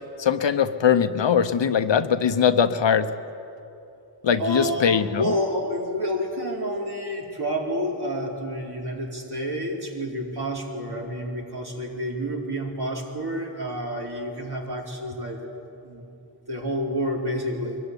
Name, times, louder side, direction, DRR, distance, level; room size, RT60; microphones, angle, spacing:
voice 1, 0.2-3.1 4.2-5.3, left 7 dB, 65° left, 11 dB, 1.0 m, -21 dB
voice 2, 4.4-15.4 15.8-16.0 16.5-17.8, equal, 55° right, -2 dB, 4.4 m, -29 dB
23.0 x 14.0 x 9.9 m, 2.8 s
cardioid pair, 45°, 46 cm